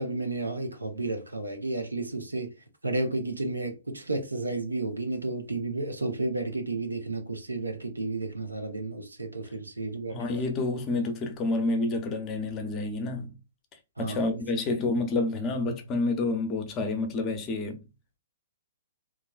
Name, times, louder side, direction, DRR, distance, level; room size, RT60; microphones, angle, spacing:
voice 1, 0.0-2.5 2.8-10.4 14.0-14.4, right 2 dB, 90° right, 0.8 m, -32 dB
voice 2, 10.1-13.3 14.0-17.8, left 2 dB, 25° left, 0.7 m, -29 dB
3.1 x 2.5 x 2.3 m
figure-of-eight pair, 120°, 0 cm